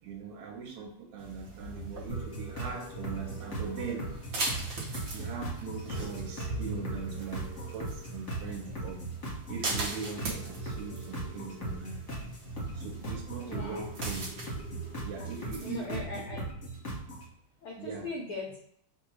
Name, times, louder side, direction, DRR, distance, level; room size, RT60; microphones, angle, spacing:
voice 1, 0.0-4.1 5.1-9.0 9.5-12.4 12.8-14.3 15.0-16.2 17.8-18.1, right 5 dB, 75° right, 1 dB, 2.0 m, -40 dB
sound 1, 1.2-15.9, right 2 dB, 60° right, 1.3 m, -41 dB
sound 2, 2.1-17.3, right 2 dB, 50° left, 0.9 m, -38 dB
voice 2, 4.6-4.9 5.2-5.3 13.4-13.9 15.6-16.8 17.6-18.6, left 3 dB, 75° left, -2 dB, 1.2 m, -40 dB
4.6 x 2.3 x 4.5 m, 0.68 s
omnidirectional pair, 3.5 m